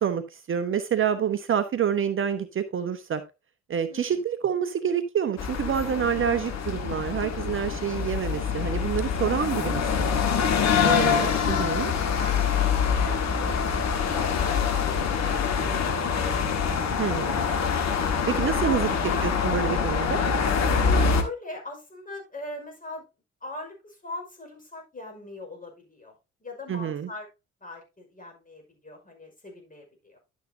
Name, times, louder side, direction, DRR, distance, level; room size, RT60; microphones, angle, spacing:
voice 1, 0.0-3.2 3.7-10.1 10.8-11.9 17.0-17.5 18.4-18.9 19.2-20.2 26.7-27.1, right 8 dB, 35° right, 10 dB, 0.8 m, -27 dB
voice 2, 3.9-4.2 12.0-17.4 17.9-18.1 18.6-19.3 20.9-23.0 23.4-26.1 26.4-27.3 27.6-30.2, left 2 dB, 25° left, 2 dB, 5.3 m, -41 dB
sound 1, 5.4-21.2, left 6 dB, 50° left, 1.7 m, -25 dB
11.5 x 7.3 x 2.8 m, 0.26 s
figure-of-eight pair, 45°, 34 cm